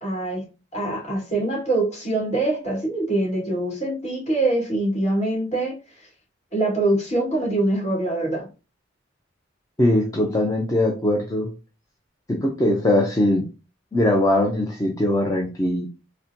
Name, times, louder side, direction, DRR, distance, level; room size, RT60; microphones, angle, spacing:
voice 1, 0.0-0.5 0.7-6.1 6.5-8.5, right 2 dB, 35° left, -3 dB, 1.9 m, -24 dB
voice 2, 9.8-11.5 12.3-13.4 13.9-15.9, left 1 dB, 20° left, 0 dB, 0.5 m, -21 dB
4.0 x 2.2 x 2.7 m, 0.32 s
head